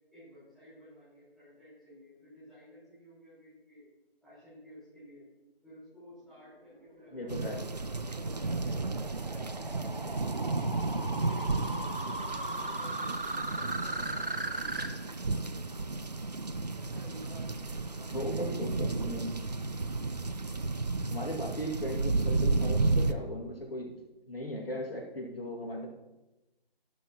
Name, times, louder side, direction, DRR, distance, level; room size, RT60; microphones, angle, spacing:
voice 1, 0.1-3.9 4.2-5.2 5.6-9.3 9.6-10.5 10.8-16.3 16.7-19.1, left 1 dB, ahead, -16 dB, 4.4 m, -54 dB
sound 1, 6.8-14.9, right 2 dB, 65° right, 1.2 m, -38 dB
voice 2, 7.1-7.6 18.1-19.3 21.1-23.9 24.3-25.9, equal, 70° left, -1 dB, 2.3 m, -37 dB
sound 2, 7.3-23.1, right 3 dB, 45° right, 0.5 m, -33 dB
12.5 x 11.5 x 3.0 m, 1.0 s
figure-of-eight pair, 155°, 30 cm